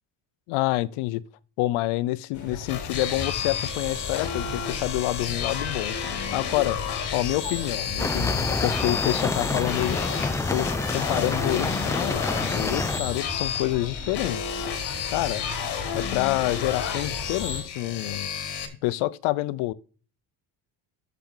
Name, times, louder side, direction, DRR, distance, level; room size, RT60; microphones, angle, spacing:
voice 1, 0.5-1.2 1.6-6.0 6.3-6.8 7.1-10.0 10.5-14.7 15.1-15.4 15.9-18.3 18.8-19.7, left 18 dB, 85° left, 0.7 m, -27 dB
sound 1, 2.3-17.6, left 4 dB, 35° left, 3.5 m, -37 dB
sound 2, 2.7-18.7, left 7 dB, 55° left, 2.3 m, -32 dB
sound 3, 8.0-13.0, left 2 dB, 5° left, 0.4 m, -28 dB
11.5 x 6.9 x 3.8 m
cardioid pair, 130°, 48 cm